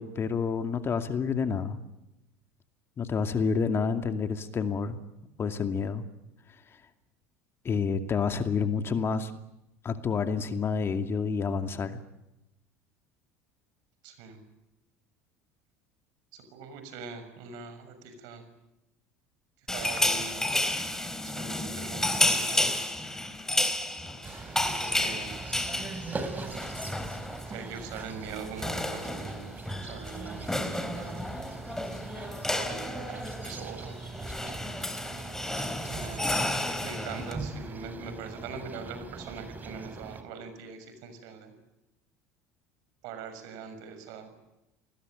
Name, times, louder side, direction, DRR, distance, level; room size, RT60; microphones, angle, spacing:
voice 1, 0.0-1.8 3.0-5.0 5.4-6.0 7.6-9.3 9.8-12.0, left 5 dB, 35° left, 7 dB, 2.4 m, -29 dB
voice 2, 14.0-14.4 16.3-18.4 19.7-20.6 21.2-22.8 24.5-25.5 27.5-31.2 32.6-33.9 35.8-36.4 36.8-41.5 43.0-44.3, right 5 dB, 65° right, 9 dB, 6.4 m, -42 dB
sound 1, 19.7-27.6 27.8-28.0 28.3-37.3, left 1 dB, 5° left, 3.7 m, -31 dB
sound 2, 24.2-40.2, right 3 dB, 25° right, 3.8 m, -41 dB
28.5 x 20.5 x 9.2 m, 0.93 s
hypercardioid pair, 75°, 7 cm